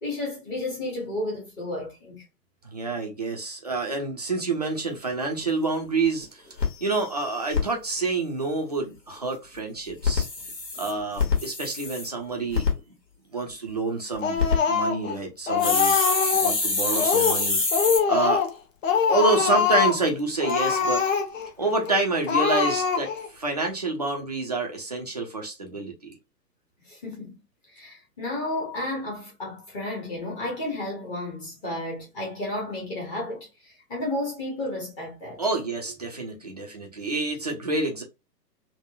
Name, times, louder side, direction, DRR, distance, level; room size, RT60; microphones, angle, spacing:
voice 1, 0.0-2.2 26.8-27.4 27.7-35.5, left 1 dB, 10° left, 0.6 m, -32 dB
voice 2, 2.6-6.4 6.8-10.3 10.8-12.7 13.3-14.4 14.7-16.0 16.3-18.5 19.1-21.0 21.6-26.1 35.4-38.0, right 3 dB, 30° right, 0.4 m, -28 dB
sound 1, 5.4-5.5 5.9-6.0 6.2-6.3 6.6-7.6 9.9-12.1 12.5-12.7 14.2-14.6 15.6-18.0, left 4 dB, 75° left, 1.4 m, -25 dB
Speech, 14.2-15.1 15.5-16.6 16.9-17.4 17.7-18.6 18.8-20.0 20.4-21.5 21.8-22.0 22.3-23.3, left 6 dB, 50° left, 0.8 m, -23 dB
3.6 x 2.0 x 2.2 m
figure-of-eight pair, 120°, 50 cm